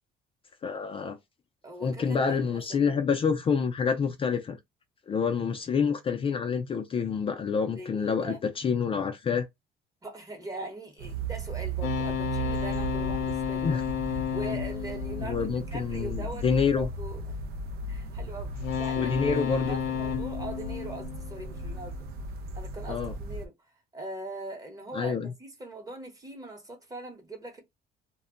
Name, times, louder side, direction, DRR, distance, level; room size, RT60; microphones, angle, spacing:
voice 1, 0.6-1.2 1.8-4.6 5.1-9.5 13.6-13.8 15.2-16.9 19.0-19.8 22.9-23.1 24.9-25.3, left 6 dB, 35° left, 0.4 m, -27 dB
voice 2, 1.6-3.0 7.7-8.4 10.0-13.8 14.3-16.4 16.7-17.4 17.9-19.3 19.6-22.0 22.5-23.5 23.9-27.6, right 2 dB, 20° right, 0.9 m, -41 dB
sound 1, 11.0-23.5, right 2 dB, 70° right, 0.5 m, -36 dB
sound 2, 11.8-16.2 18.6-21.8, left 9 dB, 80° left, 0.6 m, -32 dB
2.2 x 2.0 x 3.7 m
cardioid pair, 110°, 17 cm